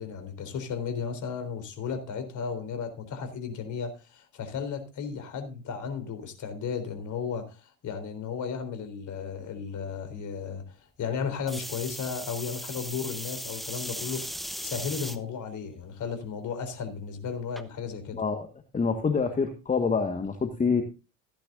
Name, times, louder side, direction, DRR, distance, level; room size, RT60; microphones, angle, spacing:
voice 1, 0.0-14.4 14.6-18.2 20.7-20.8, left 6 dB, 45° left, 3.7 m, -34 dB
sound 1, 11.5-15.2 15.8-16.3 17.6-17.7, equal, ahead, 1.0 m, -37 dB
voice 2, 18.1-18.5 18.7-20.8, left 5 dB, 20° left, 1.6 m, -26 dB
15.5 x 10.0 x 2.5 m
hypercardioid pair, 80°, 41 cm